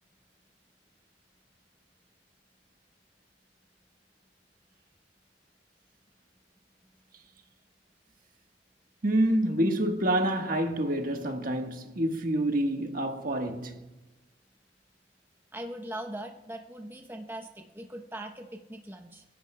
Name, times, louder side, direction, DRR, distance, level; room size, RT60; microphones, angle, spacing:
voice 1, 9.0-13.8, right 1 dB, 50° right, 1.3 m, -27 dB
voice 2, 15.5-19.2, right 1 dB, 15° right, 0.8 m, -40 dB
30.0 x 11.0 x 2.2 m
head